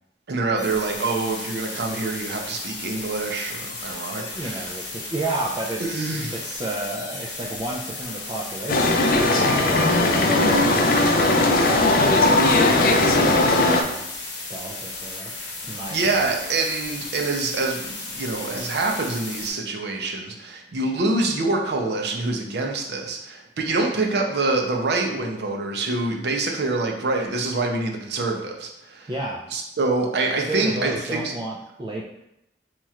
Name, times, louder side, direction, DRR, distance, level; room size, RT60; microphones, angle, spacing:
voice 1, 0.3-4.7 5.8-6.4 15.9-29.1 29.5-31.3, right 3 dB, 65° right, 1 dB, 0.6 m, -26 dB
sound 1, 0.6-19.5, left 3 dB, 75° left, 0.9 m, -35 dB
voice 2, 4.2-14.1 14.5-15.3 15.6-16.3 29.1-29.4 30.5-32.0, right 2 dB, 25° right, -3 dB, 0.3 m, -33 dB
sound 2, 8.7-13.8, left 2 dB, 55° left, 0.4 m, -18 dB
3.0 x 2.4 x 4.2 m, 0.83 s
head